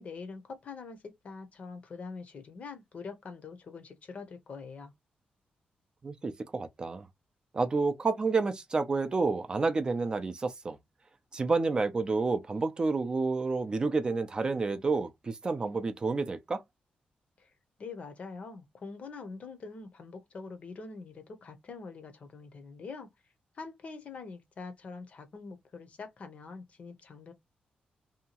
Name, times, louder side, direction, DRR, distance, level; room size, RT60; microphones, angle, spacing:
voice 1, 0.0-4.9 17.4-17.5 17.8-23.1 23.5-27.3, left 4 dB, 45° left, 0.6 m, -44 dB
voice 2, 6.0-7.1 7.5-10.8 11.3-16.6, right 3 dB, 30° right, 0.4 m, -29 dB
2.7 x 2.2 x 2.8 m
wide cardioid pair, 145°, 3 cm